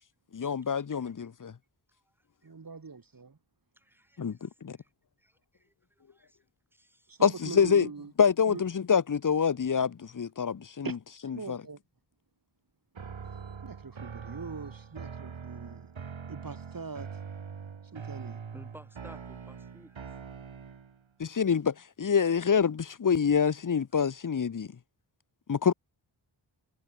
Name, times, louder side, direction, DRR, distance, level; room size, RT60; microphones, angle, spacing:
voice 1, 0.3-1.5 4.2-4.8 7.2-7.9 8.2-10.9 11.5-11.6 21.2-24.7 25.5-25.7, left 6 dB, 40° left, 0.8 m, -26 dB
voice 2, 1.9-2.3 3.8-4.9 5.2-6.4 6.7-7.2 18.5-20.1, equal, 5° right, 6.9 m, -56 dB
voice 3, 2.4-3.4 7.1-8.1 8.5-8.6 10.8-11.0 11.2-11.8 13.3-15.9 16.3-17.2 17.9-18.4, right 4 dB, 45° right, 2.0 m, -42 dB
sound 1, 12.9-21.0, right 6 dB, 75° right, 2.4 m, -43 dB
wide cardioid pair, 75°, 46 cm